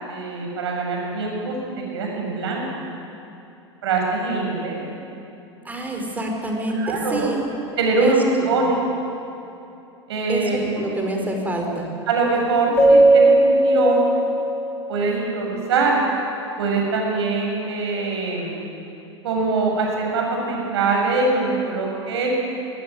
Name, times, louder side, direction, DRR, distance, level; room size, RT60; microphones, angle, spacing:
voice 1, 0.1-1.5 1.9-2.6 3.8-4.8 6.1-6.2 6.8-7.2 7.8-8.8 10.1-10.6 12.1-14.1 14.9-16.0 16.6-18.6 19.2-22.3, right 3 dB, 65° right, 0 dB, 7.2 m, -23 dB
voice 2, 5.6-7.4 8.0-8.1 8.4-8.6 10.3-11.9, right 1 dB, 10° right, 1 dB, 4.8 m, -27 dB
Keyboard (musical), 12.8-15.2, right 2 dB, 15° left, 5.2 m, -17 dB
22.0 x 16.5 x 9.5 m, 2.7 s
figure-of-eight pair, 90°, 15 cm